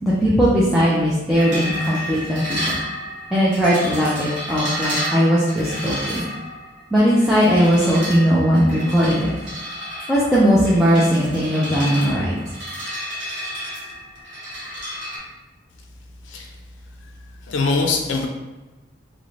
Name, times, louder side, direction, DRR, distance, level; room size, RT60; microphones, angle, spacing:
voice 1, 0.0-2.7 3.3-6.2 6.9-9.3 10.1-12.4, equal, ahead, -9 dB, 0.3 m, -18 dB
sound 1, 1.3-15.2, equal, 70° right, 0.9 m, -31 dB
voice 2, 17.5-18.3, left 3 dB, 80° left, 2 dB, 0.4 m, -22 dB
2.5 x 2.0 x 3.0 m, 1.2 s
head